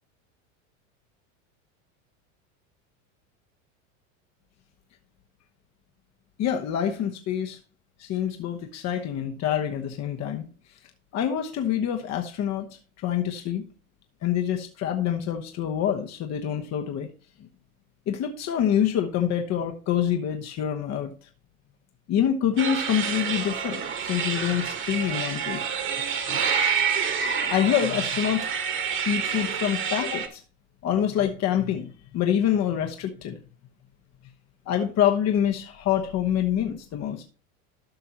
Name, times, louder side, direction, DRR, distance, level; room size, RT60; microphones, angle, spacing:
voice 1, 6.4-7.6 8.0-10.5 11.1-12.7 13.0-13.7 14.2-17.1 18.1-21.1 22.1-25.7 26.3-26.4 27.5-28.5 29.1-30.4 30.8-33.4 34.7-37.2, left 9 dB, 40° left, 1.1 m, -26 dB
sound 1, 22.6-30.3, right 7 dB, 30° right, 1.6 m, -28 dB
13.0 x 5.6 x 2.9 m
hypercardioid pair, 95°, 40 cm